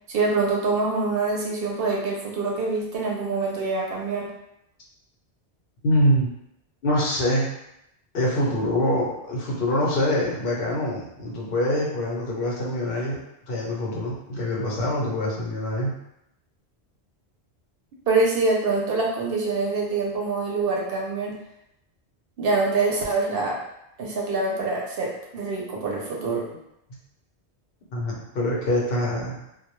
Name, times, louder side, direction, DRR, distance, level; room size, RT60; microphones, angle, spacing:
voice 1, 0.1-4.3 18.1-21.4 22.4-23.6 24.0-26.4, right 3 dB, 65° right, -2 dB, 0.7 m, -25 dB
voice 2, 5.8-6.3 6.8-7.5 8.1-13.2 13.5-15.9 27.9-29.4, left 1 dB, 65° left, -4 dB, 0.8 m, -24 dB
2.2 x 2.0 x 3.0 m, 0.81 s
omnidirectional pair, 1.1 m